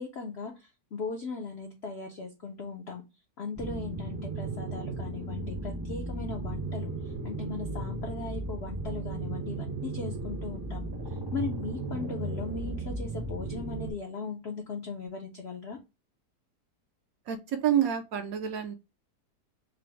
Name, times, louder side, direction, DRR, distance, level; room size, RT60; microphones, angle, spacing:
voice 1, 0.0-3.0 3.4-15.8, left 4 dB, 65° left, 2 dB, 0.6 m, -38 dB
sound 1, 3.6-13.9, right 2 dB, 25° right, 0.5 m, -35 dB
Bass guitar, 8.8-15.1, right 7 dB, 85° right, 1.4 m, -53 dB
voice 2, 17.3-18.7, right 10 dB, 70° right, 7 dB, 0.9 m, -28 dB
3.9 x 2.0 x 4.3 m, 0.26 s
omnidirectional pair, 1.8 m